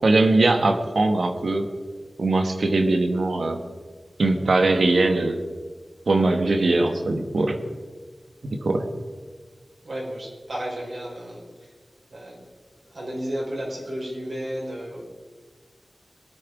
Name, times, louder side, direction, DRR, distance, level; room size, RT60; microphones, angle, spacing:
voice 1, 0.0-1.7 2.2-3.6 4.2-5.4 6.1-7.6 8.4-8.9, right 2 dB, 85° right, 6 dB, 1.3 m, -21 dB
voice 2, 9.8-11.7 12.1-12.4 12.8-15.0, equal, 65° right, -4 dB, 4.9 m, -33 dB
21.0 x 9.0 x 4.8 m, 1.4 s
wide cardioid pair, 75°, 0 cm